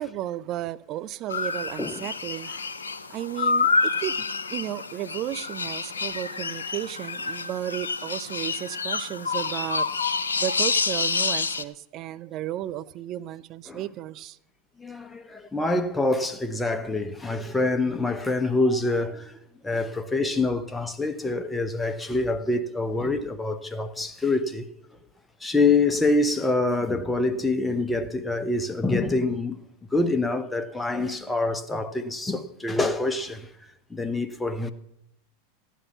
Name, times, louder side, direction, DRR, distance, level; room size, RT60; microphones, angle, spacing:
voice 1, 0.0-2.7 3.1-9.9 10.4-14.4, right 13 dB, 40° right, 0.6 m, -34 dB
sound 1, 1.3-11.6, left 4 dB, 85° left, 0.7 m, -28 dB
voice 2, 14.8-24.6 25.4-29.6 29.9-34.7, left 2 dB, 10° left, 1.2 m, -26 dB
14.5 x 10.0 x 5.7 m
figure-of-eight pair, 90°, 0 cm